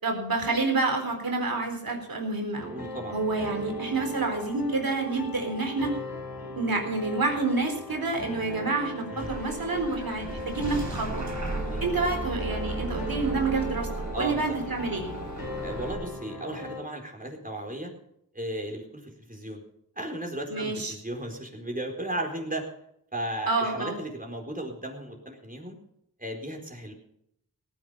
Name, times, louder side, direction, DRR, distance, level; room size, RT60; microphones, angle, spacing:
voice 1, 0.0-2.7 3.1-5.9 6.6-11.2 11.8-13.9 14.2-15.1 20.5-20.9 23.5-24.0, right 3 dB, 75° right, 4 dB, 4.1 m, -28 dB
sound 1, 2.5-16.8, left 1 dB, 85° left, 5.0 m, -38 dB
voice 2, 2.7-3.2 9.1-9.4 11.7-11.9 14.1-14.6 15.6-17.9 18.3-19.6 20.0-22.6 23.1-25.8 26.2-26.9, right 1 dB, 25° right, 1 dB, 4.4 m, -35 dB
Bus / Engine starting, 9.2-15.9, right 2 dB, 55° right, 3.9 m, -35 dB
18.0 x 10.5 x 5.7 m, 0.76 s
cardioid pair, 50°, 35 cm